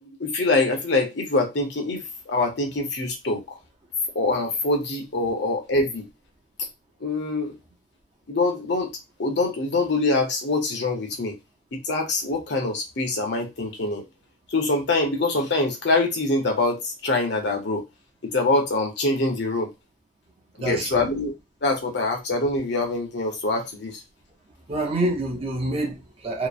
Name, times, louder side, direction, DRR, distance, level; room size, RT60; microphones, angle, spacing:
voice 1, 0.0-3.6 4.1-6.0 7.0-7.5 8.3-8.9 9.2-11.4 11.7-14.0 14.5-17.8 18.2-19.7 20.6-21.3 21.6-24.0, left 2 dB, 65° left, 0.8 m, -24 dB
voice 2, 20.6-21.1 24.7-26.5, right 1 dB, 30° right, 0.5 m, -27 dB
2.9 x 2.1 x 2.4 m
head